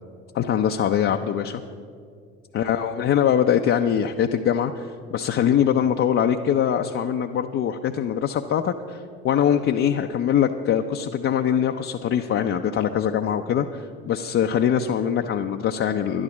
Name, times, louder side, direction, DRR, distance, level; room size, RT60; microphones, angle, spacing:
voice 1, 0.3-1.6 2.5-16.2, left 9 dB, 35° left, 4 dB, 0.6 m, -23 dB
11.0 x 11.0 x 6.2 m, 2.2 s
figure-of-eight pair, 60°, 36 cm